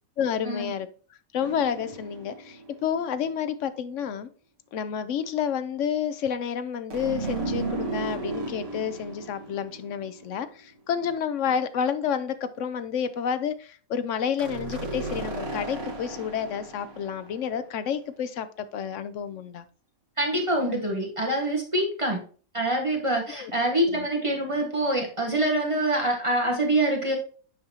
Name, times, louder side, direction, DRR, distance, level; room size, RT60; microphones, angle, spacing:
voice 1, 0.2-0.9 1.3-4.3 4.7-19.6 22.1-22.2 23.3-23.5 23.9-24.1, left 8 dB, 65° left, 12 dB, 0.9 m, -30 dB
sound 1, 1.4-3.0 6.9-10.6 14.4-17.7, right 3 dB, 60° right, 1.4 m, -35 dB
voice 2, 20.2-22.2 22.5-27.2, right 1 dB, 20° right, 0 dB, 1.6 m, -25 dB
8.0 x 5.3 x 2.8 m, 0.40 s
omnidirectional pair, 1.5 m